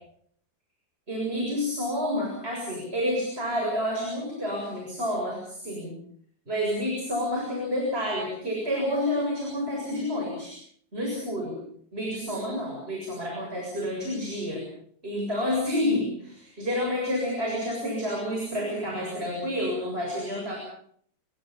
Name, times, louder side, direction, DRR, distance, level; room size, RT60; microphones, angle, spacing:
voice 1, 1.1-6.0 6.5-10.6 10.9-11.6 11.9-14.6 15.0-20.6, left 1 dB, 15° right, 0 dB, 7.6 m, -29 dB
28.5 x 23.0 x 5.6 m, 0.64 s
omnidirectional pair, 4.5 m